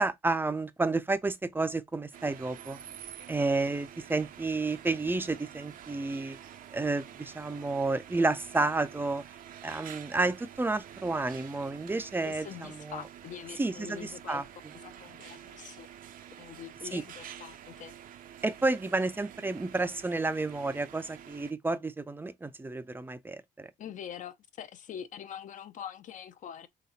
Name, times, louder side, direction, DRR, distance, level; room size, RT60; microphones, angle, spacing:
voice 1, 0.0-2.8 3.3-6.4 6.7-9.2 9.6-13.0 13.6-14.4 16.9-17.0 18.4-23.7, right 3 dB, 10° right, 0.5 m, -31 dB
sound 1, 2.1-21.5, right 10 dB, 55° right, 0.6 m, -48 dB
voice 2, 12.2-14.4 14.8-15.9 16.4-17.9 23.8-26.7, left 9 dB, 50° left, 0.7 m, -44 dB
4.1 x 3.1 x 4.1 m
cardioid pair, 110°, 17 cm